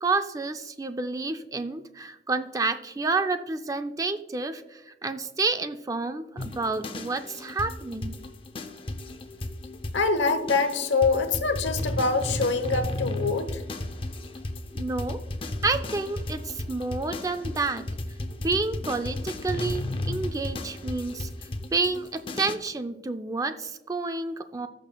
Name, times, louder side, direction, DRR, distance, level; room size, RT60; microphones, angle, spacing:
voice 1, 0.0-8.2 14.7-15.2 15.6-17.9 18.4-21.3 21.7-24.7, right 3 dB, 20° right, 9 dB, 0.4 m, -29 dB
sound 1, 6.4-22.6, left 1 dB, 30° left, 0.6 m, -34 dB
voice 2, 9.9-13.6, left 4 dB, 85° left, 9 dB, 1.0 m, -25 dB
17.0 x 6.8 x 2.3 m, 1.1 s
head